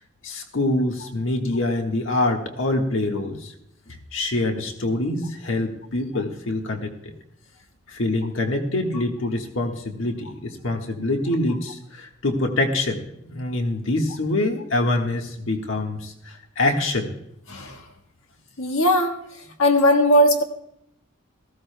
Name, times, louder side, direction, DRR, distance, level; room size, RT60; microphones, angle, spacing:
voice 1, 0.2-3.5 4.1-6.9 7.9-17.1, left 2 dB, 65° left, 2 dB, 1.5 m, -25 dB
voice 2, 17.5-17.8 18.6-19.1 19.6-20.4, equal, 80° left, 4 dB, 1.5 m, -18 dB
18.5 x 15.0 x 2.2 m, 0.77 s
head